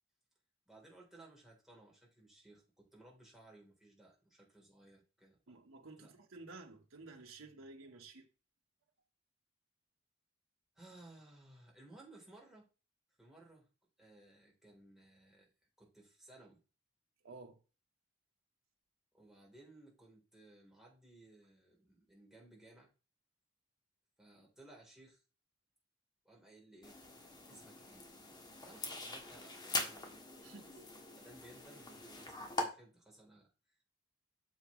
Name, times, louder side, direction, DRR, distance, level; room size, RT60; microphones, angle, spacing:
voice 1, 0.7-5.6 6.0-6.1 10.7-12.7 13.2-13.7 14.0-15.5 15.8-16.6 19.1-22.9 24.2-25.2 26.2-27.0 27.5-28.1 28.6-30.1 30.4-30.7 31.1-33.9, right 2 dB, ahead, 3.5 m, -60 dB
voice 2, 5.5-8.3 17.2-17.6 27.5-27.6 30.4-30.9, right 3 dB, 85° right, 1.3 m, -53 dB
sound 1, 26.8-32.6, left 2 dB, 20° left, 1.6 m, -43 dB
7.7 x 7.2 x 3.1 m
head